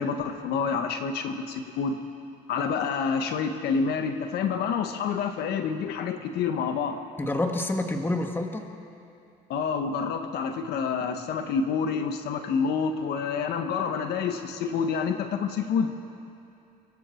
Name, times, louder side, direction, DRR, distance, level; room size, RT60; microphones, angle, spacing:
voice 1, 0.0-2.0 2.5-7.0 9.5-15.9, left 6 dB, 75° left, 6 dB, 1.4 m, -28 dB
voice 2, 7.2-8.7, left 2 dB, 15° left, 4 dB, 1.7 m, -28 dB
25.5 x 23.0 x 4.5 m, 2.6 s
cardioid pair, 110°, 17 cm